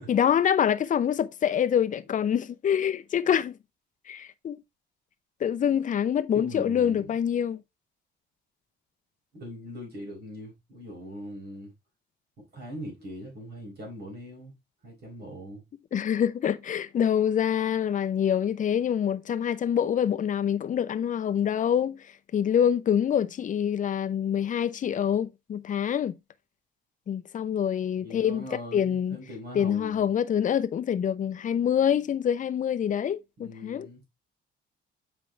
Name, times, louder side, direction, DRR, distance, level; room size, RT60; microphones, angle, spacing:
voice 1, 0.1-3.5 4.1-4.6 5.4-7.6 15.9-22.0 22.3-26.1 27.1-28.4 28.7-29.2 29.5-33.9, left 9 dB, 40° left, 0.6 m, -26 dB
voice 2, 6.3-7.2 9.3-11.7 12.5-14.6 14.8-15.6 27.9-30.1 33.4-34.0, equal, 50° right, 5.0 m, -41 dB
7.7 x 5.2 x 3.3 m
cardioid pair, 135°, 21 cm